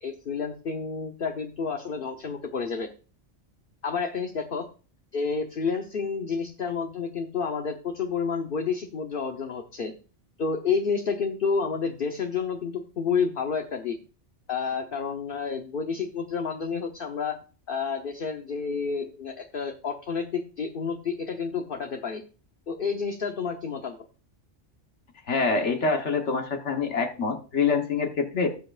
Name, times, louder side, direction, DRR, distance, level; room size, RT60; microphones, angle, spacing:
voice 1, 0.0-2.9 3.8-4.6 5.1-9.9 10.4-14.0 14.5-17.4 17.7-22.2 22.7-24.0, left 5 dB, 50° left, 4 dB, 1.1 m, -30 dB
voice 2, 25.3-28.5, left 4 dB, 70° left, 3 dB, 1.6 m, -25 dB
17.5 x 7.7 x 2.5 m, 0.37 s
omnidirectional pair, 1.2 m